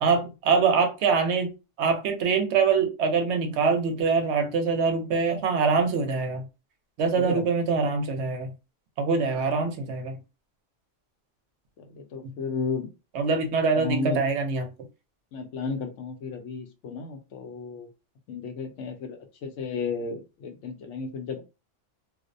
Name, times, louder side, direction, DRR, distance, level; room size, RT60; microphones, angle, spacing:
voice 1, 0.0-6.4 7.0-8.5 9.0-10.2 13.1-14.6, right 5 dB, 70° right, 0.8 m, -24 dB
voice 2, 11.8-12.9 13.7-14.2 15.3-17.9 18.3-21.4, left 4 dB, 75° left, 0.9 m, -33 dB
2.4 x 2.0 x 2.5 m
omnidirectional pair, 1.3 m